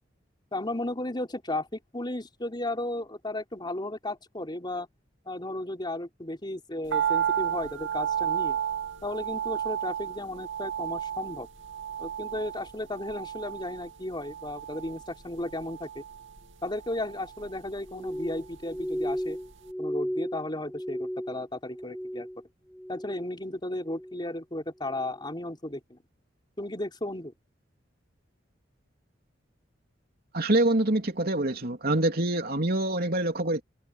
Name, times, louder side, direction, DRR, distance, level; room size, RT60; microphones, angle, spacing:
voice 1, 0.5-4.9 5.3-8.6 9.0-11.5 12.0-16.0 16.6-19.4 19.8-22.3 22.9-26.0 26.6-27.3, left 1 dB, 25° left, 4.6 m, -34 dB
sound 1, 6.9-19.2 19.5-19.6, right 9 dB, 90° right, 2.5 m, -33 dB
Glass, 17.9-22.4 22.7-23.4 23.8-24.3 24.9-25.2, equal, 5° left, 4.7 m, -35 dB
voice 2, 30.3-33.6, right 1 dB, 55° right, 3.4 m, -25 dB
head